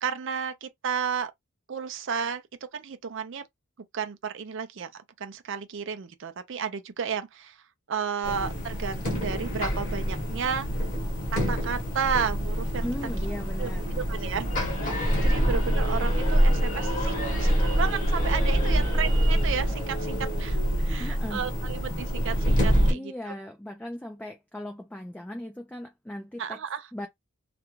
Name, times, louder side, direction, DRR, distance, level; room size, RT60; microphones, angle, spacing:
voice 1, 0.0-1.3 1.7-2.4 2.7-3.5 3.9-7.6 7.9-10.7 11.3-12.9 13.6-14.6 14.9-23.3 26.4-26.9, right 6 dB, 55° right, 0.5 m, -32 dB
sound 1, 8.2-22.9, equal, 35° left, 1.0 m, -26 dB
voice 2, 12.8-14.4 18.7-18.8 21.0-21.5 22.9-26.6 26.9-27.1, left 1 dB, 5° left, 0.3 m, -38 dB
2.5 x 2.2 x 3.0 m
head